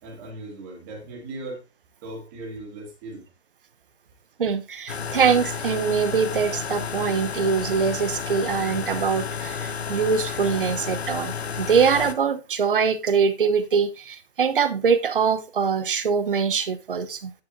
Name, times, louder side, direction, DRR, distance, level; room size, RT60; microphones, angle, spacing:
voice 1, 0.0-1.6 2.0-3.3, right 2 dB, 20° right, 2.5 m, -38 dB
voice 2, 4.4-17.3, right 6 dB, 50° right, 1.0 m, -23 dB
sound 1, 4.9-12.1, left 7 dB, 65° left, 1.1 m, -31 dB
10.5 x 7.1 x 2.7 m
hypercardioid pair, 160°, 33 cm